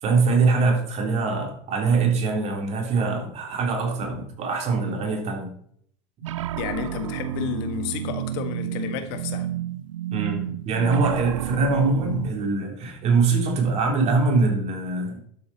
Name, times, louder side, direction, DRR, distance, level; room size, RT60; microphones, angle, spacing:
voice 1, 0.0-5.5 10.1-15.3, right 4 dB, 45° right, 3.3 m, -23 dB
sound 1, 6.2-12.3, right 12 dB, 85° right, 0.4 m, -31 dB
voice 2, 6.6-9.5, left 9 dB, 65° left, 1.7 m, -31 dB
12.0 x 7.6 x 4.2 m
hypercardioid pair, 85°, 16 cm